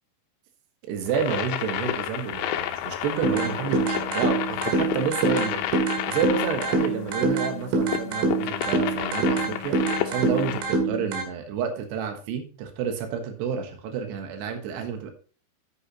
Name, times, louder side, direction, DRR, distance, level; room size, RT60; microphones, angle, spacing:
voice 1, 0.9-5.6 6.1-15.1, right 6 dB, 70° right, 5 dB, 3.4 m, -30 dB
sound 1, 1.1-10.6, left 12 dB, 80° left, 2.9 m, -31 dB
sound 2, 3.2-11.2, right 3 dB, 85° right, 4.3 m, -26 dB
10.0 x 9.0 x 2.9 m, 0.39 s
omnidirectional pair, 5.3 m